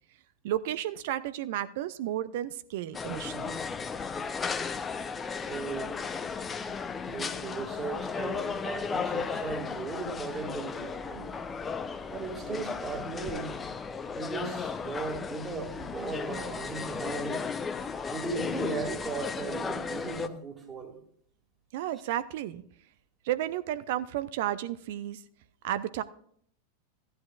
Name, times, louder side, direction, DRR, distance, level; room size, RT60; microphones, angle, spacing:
voice 1, 0.4-3.6 21.7-22.6 23.2-25.2 25.6-26.0, right 12 dB, 50° right, 0.5 m, -32 dB
sound 1, 2.9-20.3, left 5 dB, 15° left, 0.6 m, -35 dB
voice 2, 5.3-5.9 7.0-11.3 12.1-13.6 14.1-17.5 18.1-21.0, right 4 dB, 20° right, 2.1 m, -37 dB
15.0 x 10.5 x 2.4 m
figure-of-eight pair, 90°, 0 cm